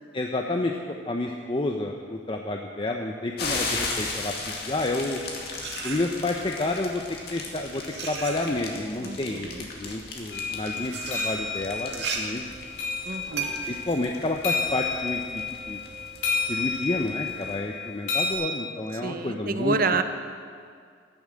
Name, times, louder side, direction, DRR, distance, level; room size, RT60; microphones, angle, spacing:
voice 1, 0.1-4.3 4.6-5.2 5.8-7.0 7.3-9.5 9.8-12.6 13.7-15.8 16.5-19.8, left 2 dB, 30° left, 2 dB, 0.7 m, -30 dB
sound 1, 3.4-17.6, left 3 dB, 60° left, 2.4 m, -37 dB
sound 2, 4.6-6.5 7.3-15.2, right 5 dB, 65° right, 2.1 m, -37 dB
voice 2, 9.0-9.7 13.0-13.5 19.0-20.0, right 4 dB, 50° right, 8 dB, 0.9 m, -28 dB
sound 3, 10.3-18.3, left 5 dB, 90° left, 3.3 m, -31 dB
14.0 x 11.0 x 7.6 m, 2.1 s
head